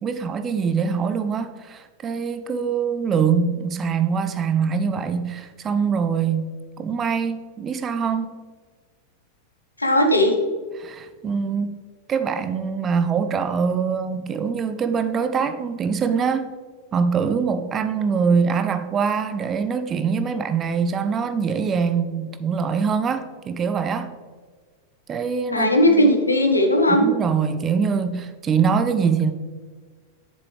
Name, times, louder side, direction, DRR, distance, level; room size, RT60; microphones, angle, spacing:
voice 1, 0.0-8.3 10.7-11.7 12.1-16.5 16.9-24.1 25.1-26.1 26.9-29.3, right 6 dB, 25° right, 10 dB, 0.5 m, -23 dB
voice 2, 9.8-10.3 25.5-27.1, left 1 dB, 80° left, 4 dB, 1.0 m, -17 dB
7.9 x 7.0 x 3.2 m, 1.5 s
figure-of-eight pair, 90°, 0 cm